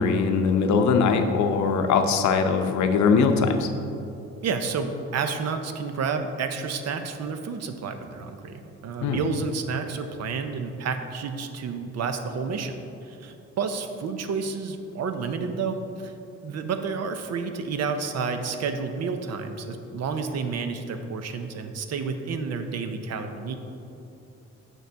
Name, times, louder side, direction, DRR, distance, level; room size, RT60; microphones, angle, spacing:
voice 1, 0.0-3.7 9.0-9.2, left 5 dB, 70° left, 6 dB, 0.6 m, -21 dB
voice 2, 4.4-16.1 16.4-23.6, right 5 dB, 60° right, 7 dB, 0.6 m, -30 dB
6.4 x 6.3 x 3.4 m, 2.8 s
cardioid pair, 90°, 30 cm